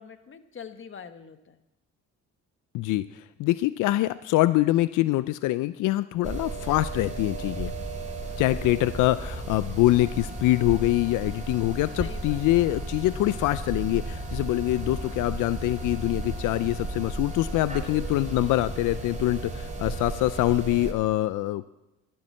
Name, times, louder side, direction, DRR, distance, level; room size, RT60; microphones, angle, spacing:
voice 1, 0.0-1.6 12.0-12.4, left 7 dB, 40° left, 10 dB, 1.3 m, -44 dB
voice 2, 2.7-7.7 8.4-21.7, left 17 dB, 90° left, 16 dB, 0.5 m, -24 dB
sound 1, 6.2-20.9, right 2 dB, 25° right, 2.7 m, -34 dB
12.5 x 12.0 x 7.5 m, 0.96 s
cardioid pair, 90°, 30 cm